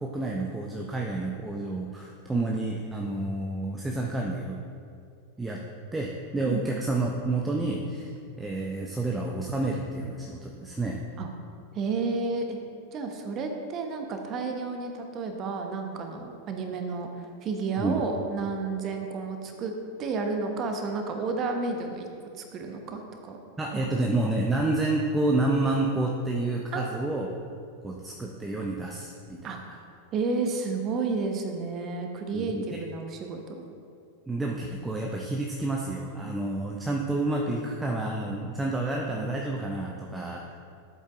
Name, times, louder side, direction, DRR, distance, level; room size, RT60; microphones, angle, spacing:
voice 1, 0.0-4.6 5.4-5.6 5.9-11.0 17.8-18.0 23.6-27.3 27.8-29.4 32.3-32.8 34.3-40.6, right 2 dB, 10° right, -1 dB, 0.6 m, -29 dB
voice 2, 11.7-12.6 12.9-19.7 20.0-22.1 22.3-23.4 23.8-24.0 26.7-27.1 29.4-29.6 30.1-33.6 38.8-39.0, right 4 dB, 30° right, 4 dB, 0.9 m, -31 dB
11.0 x 8.1 x 2.5 m, 2.4 s
figure-of-eight pair, 90°, 0 cm